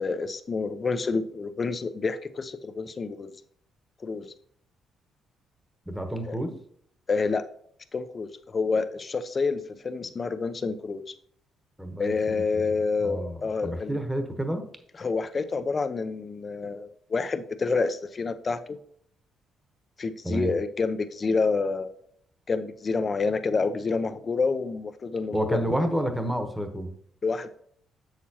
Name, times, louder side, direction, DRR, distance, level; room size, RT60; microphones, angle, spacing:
voice 1, 0.0-3.3 4.0-4.3 6.3-6.4 7.1-7.4 7.9-11.1 12.0-14.0 15.0-18.8 20.0-21.9 22.5-25.6 27.2-27.5, left 4 dB, 35° left, 10 dB, 0.6 m, -28 dB
voice 2, 5.9-6.6 11.8-12.7 13.0-14.7 20.2-20.5 25.3-26.9, right 1 dB, 5° right, 6 dB, 1.0 m, -30 dB
7.2 x 6.5 x 2.9 m, 0.64 s
cardioid pair, 90°, 0 cm